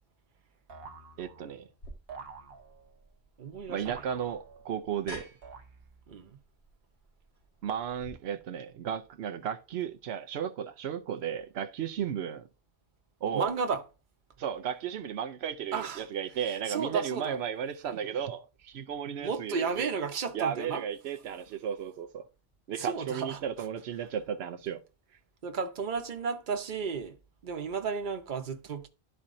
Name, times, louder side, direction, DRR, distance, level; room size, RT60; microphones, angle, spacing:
sound 1, 0.7-1.6 2.1-3.0 3.9-4.9 5.4-6.1, right 4 dB, 70° right, 1.1 m, -48 dB
voice 1, 1.2-1.7 3.7-5.3 7.6-12.5 13.2-13.5 14.4-19.9 20.3-22.3 22.7-24.8, right 8 dB, 90° right, 0.9 m, -34 dB
sound 2, 1.8-8.1, equal, 80° left, 2.0 m, -51 dB
voice 2, 3.4-4.0 6.1-6.4 13.3-13.8 15.7-16.1 16.4-17.4 19.2-20.8 22.8-23.4 25.4-28.9, right 5 dB, 55° right, 1.0 m, -33 dB
12.0 x 4.3 x 2.6 m
omnidirectional pair, 1.0 m